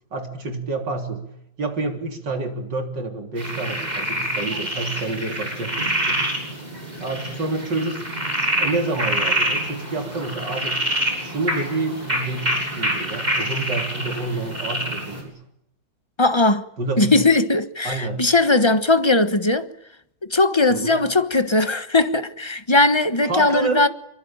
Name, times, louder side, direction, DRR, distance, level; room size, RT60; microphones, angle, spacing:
voice 1, 0.1-1.3 1.6-6.2 7.0-8.0 8.6-10.9 11.2-15.4 16.8-17.2 17.8-18.2 20.7-21.0 23.2-23.9, right 3 dB, 75° right, 4.1 m, -28 dB
sound 1, 3.4-15.2, right 1 dB, 20° right, 7.0 m, -26 dB
voice 2, 16.2-16.7 17.0-19.7 20.3-23.9, left 2 dB, 20° left, 1.0 m, -19 dB
25.5 x 23.5 x 8.9 m
omnidirectional pair, 1.9 m